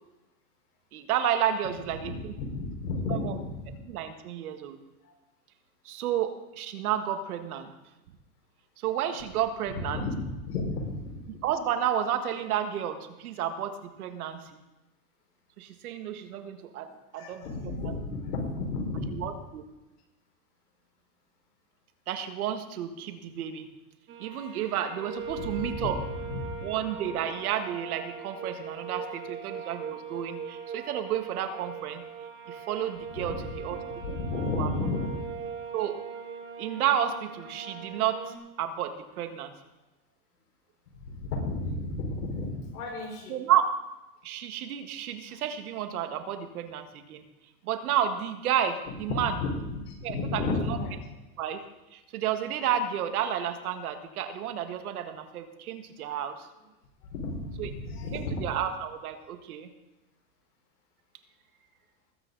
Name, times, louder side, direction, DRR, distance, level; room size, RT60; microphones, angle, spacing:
voice 1, 0.9-2.3 3.2-3.3 3.9-4.8 5.8-7.7 8.8-10.1 11.3-14.5 15.6-17.4 17.8-17.9 19.1-19.6 22.1-23.7 24.2-25.9 26.6-32.0 32.5-33.8 34.6-34.7 35.7-36.0 36.6-38.2 38.6-39.5 43.3-43.7 44.2-47.2 47.6-49.4 50.0-50.4 50.7-50.8 51.4-51.6 51.9-56.5 57.6-57.7 58.1-59.7, right 9 dB, 70° right, 7 dB, 1.7 m, -31 dB
voice 2, 2.0-3.8 5.0-5.1 9.8-11.2 17.1-19.3 25.4-26.7 33.2-33.4 34.0-35.3 41.0-43.4 49.1-51.0 57.1-58.4, left 3 dB, 80° left, 0 dB, 5.1 m, -33 dB
sound 1, 24.1-38.4, right 6 dB, 25° right, 1.3 m, -40 dB
20.0 x 8.2 x 4.0 m, 1.0 s
supercardioid pair, 160°, 45 cm